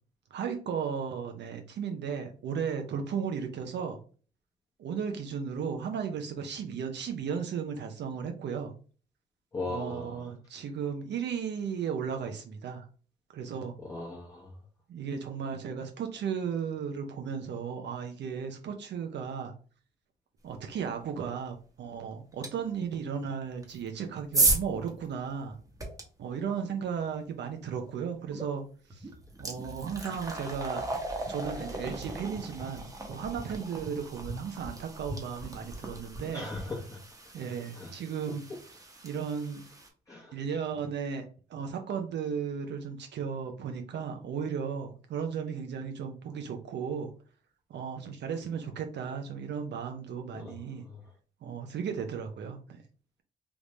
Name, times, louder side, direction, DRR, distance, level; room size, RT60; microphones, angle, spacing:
voice 1, 0.3-4.0 4.8-8.7 9.7-12.9 13.3-13.8 14.9-19.5 20.4-25.6 26.2-28.6 28.9-29.1 29.4-30.8 31.3-36.5 37.3-39.6 40.3-47.1 47.7-50.8 51.4-52.8, right 7 dB, 60° right, 5 dB, 0.6 m, -35 dB
voice 2, 9.5-10.1 13.9-14.5 36.3-37.0 37.8-37.9 40.1-40.3 50.4-50.5, left 3 dB, 15° left, -5 dB, 1.0 m, -37 dB
sound 1, 22.4-22.5 23.6-26.0 28.3-28.5 28.9-39.9, right 2 dB, 15° right, 1.0 m, -35 dB
3.5 x 2.4 x 3.1 m, 0.39 s
cardioid pair, 90°, 20 cm